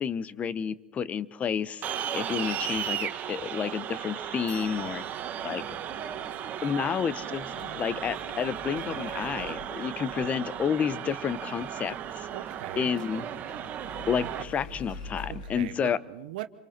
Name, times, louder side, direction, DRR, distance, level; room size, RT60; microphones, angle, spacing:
voice 1, 0.0-5.0 5.4-5.6 6.6-12.3 12.8-13.2 14.1-16.0, left 7 dB, 30° left, 0.8 m, -30 dB
sound 1, 1.8-14.4, right 10 dB, 35° right, 1.6 m, -35 dB
sound 2, 4.4-15.6, left 2 dB, 70° left, 4.5 m, -47 dB
voice 2, 4.6-5.0 12.3-12.9 15.3-16.5, right 15 dB, 65° right, 1.0 m, -40 dB
27.5 x 24.0 x 4.4 m
hypercardioid pair, 105°, 5 cm